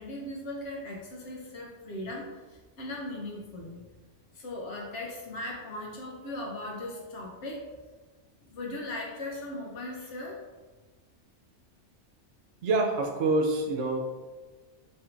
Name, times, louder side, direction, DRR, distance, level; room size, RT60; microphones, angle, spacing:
voice 1, 0.0-3.9 4.3-7.7 8.4-10.4, left 1 dB, 75° left, -2 dB, 1.2 m, -38 dB
voice 2, 12.6-14.0, right 2 dB, 75° right, 2 dB, 1.0 m, -26 dB
3.2 x 2.5 x 4.4 m, 1.3 s
omnidirectional pair, 1.2 m